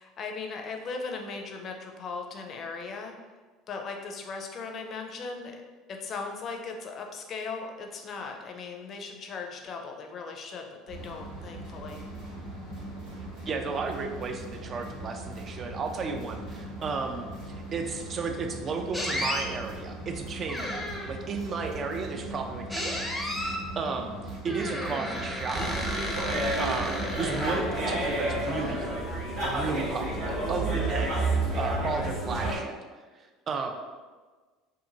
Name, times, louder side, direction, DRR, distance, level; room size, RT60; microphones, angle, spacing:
voice 1, 0.0-3.1 3.7-5.6 5.9-12.0, left 4 dB, 45° left, 3 dB, 0.4 m, -38 dB
sound 1, 10.9-27.7, right 2 dB, 80° right, 1.2 m, -40 dB
voice 2, 13.5-23.1 23.3-25.8 26.6-29.0 29.4-32.8 33.1-33.7, right 4 dB, 40° right, 4 dB, 0.3 m, -34 dB
sound 2, 18.9-19.5 20.5-21.2 22.7-23.7 24.5-27.9, left 1 dB, ahead, 0.6 m, -33 dB
sound 3, 25.5-32.6, right 2 dB, 60° right, 0.9 m, -30 dB
2.5 x 2.5 x 2.8 m, 1.4 s
hypercardioid pair, 70°, 0 cm